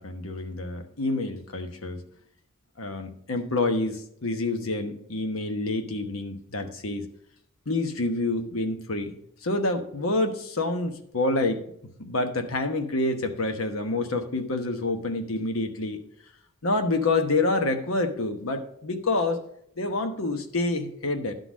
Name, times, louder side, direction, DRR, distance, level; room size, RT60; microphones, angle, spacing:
voice 1, 0.0-2.0 2.8-7.0 7.7-11.6 12.0-16.0 16.6-19.4 19.8-21.3, left 2 dB, 85° left, 6 dB, 1.1 m, -27 dB
12.0 x 4.0 x 6.2 m, 0.71 s
head